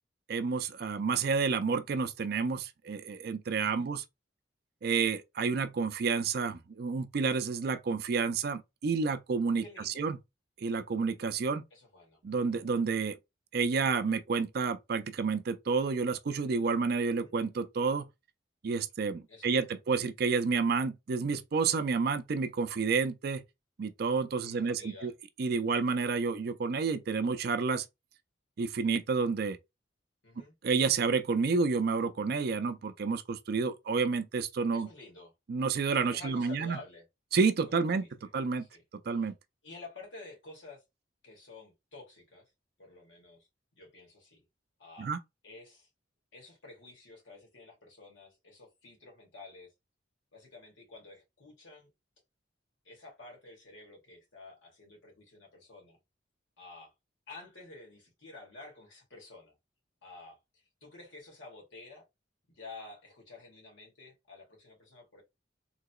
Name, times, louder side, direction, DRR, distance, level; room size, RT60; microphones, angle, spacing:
voice 1, 0.3-4.0 4.8-10.2 10.6-11.6 12.2-13.2 13.5-18.1 18.6-23.4 23.8-25.1 25.4-27.8 28.6-29.6 30.6-34.9 35.5-36.8 37.3-38.0 38.3-38.7 39.1-39.3 45.0-45.2, right 5 dB, 55° right, 0.4 m, -30 dB
voice 2, 9.6-10.1 11.7-12.2 17.1-17.4 19.3-19.8 24.4-25.1 25.8-25.9 30.2-30.6 34.7-35.3 36.1-37.1 37.7-38.3 38.6-38.8 39.1-39.3 39.6-40.8 41.2-42.5 42.8-43.5 43.8-44.5 44.8-45.1 45.4-45.9 46.3-49.7 50.3-51.9 52.8-56.0 56.6-56.9 57.3-59.5 60.0-62.0 62.5-65.2, left 3 dB, 85° left, 1.9 m, -51 dB
3.8 x 2.8 x 2.3 m
head